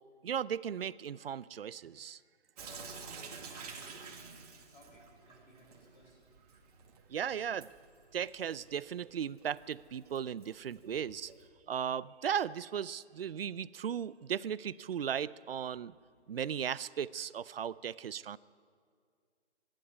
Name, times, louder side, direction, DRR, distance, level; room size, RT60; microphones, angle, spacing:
voice 1, 0.2-2.2 7.1-7.7 8.1-11.3 11.7-15.9 16.3-18.4, right 8 dB, 55° right, 19 dB, 0.6 m, -36 dB
voice 2, 2.6-4.4 4.7-6.1 7.0-7.1, left 1 dB, 45° left, -2 dB, 5.1 m, -59 dB
Sink (filling or washing) / Drip, 2.6-11.5, right 5 dB, 35° right, 2.1 m, -51 dB
25.0 x 11.5 x 9.6 m, 2.1 s
hypercardioid pair, 165°, 35 cm